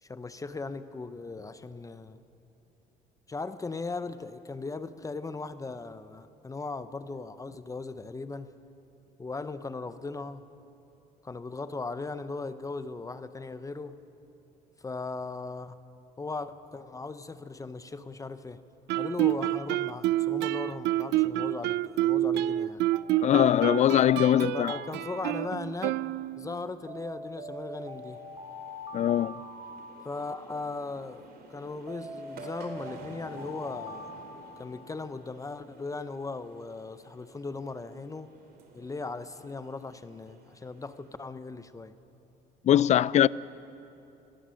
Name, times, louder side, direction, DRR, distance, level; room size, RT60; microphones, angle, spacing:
voice 1, 0.0-2.2 3.3-8.5 9.2-10.4 11.2-14.0 14.8-15.8 16.2-18.6 18.9-22.8 24.5-26.0 26.4-28.2 30.0-34.1 34.6-38.3 38.7-41.9, left 3 dB, 20° left, 0.7 m, -38 dB
Guitar, 18.9-26.6, right 15 dB, 80° right, 0.4 m, -28 dB
Alarm, 22.9-25.5 26.9-30.5 31.9-35.1, equal, 25° right, 3.3 m, -43 dB
voice 2, 23.2-24.7 28.9-29.3 42.6-43.3, left 11 dB, 45° left, 0.4 m, -22 dB
sound 1, 27.7-41.2, right 3 dB, 65° right, 3.0 m, -53 dB
25.0 x 18.0 x 6.4 m
cardioid pair, 110°, 17 cm